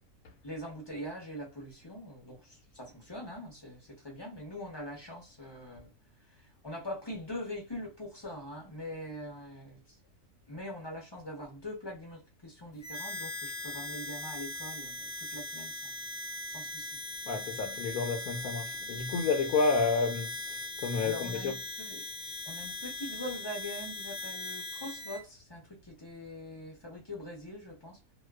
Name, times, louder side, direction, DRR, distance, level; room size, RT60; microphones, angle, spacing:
voice 1, 0.4-5.9 6.3-10.0 10.5-16.0 16.5-17.0 19.1-19.2 21.0-22.0 22.5-28.0, left 1 dB, 30° left, 0.5 m, -43 dB
Harmonica, 12.8-25.2, left 2 dB, 55° left, 0.8 m, -40 dB
voice 2, 17.3-20.6 20.8-21.6, left 4 dB, 80° left, 1.0 m, -30 dB
2.4 x 2.3 x 2.2 m
omnidirectional pair, 1.5 m